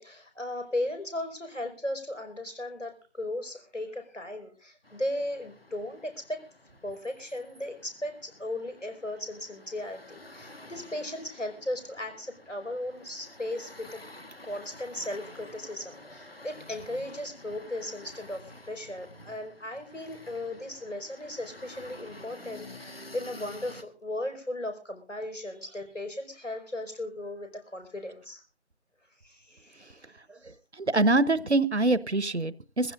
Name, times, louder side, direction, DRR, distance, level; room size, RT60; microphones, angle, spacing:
voice 1, 0.0-6.4 6.8-14.0 14.4-28.4 29.2-30.0, left 1 dB, 90° left, 6 dB, 5.2 m, -36 dB
sound 1, 4.8-23.8, left 1 dB, 55° left, 1.6 m, -50 dB
voice 2, 30.8-32.9, right 2 dB, 65° right, 18 dB, 0.9 m, -24 dB
22.5 x 15.5 x 2.5 m, 0.32 s
figure-of-eight pair, 175°, 36 cm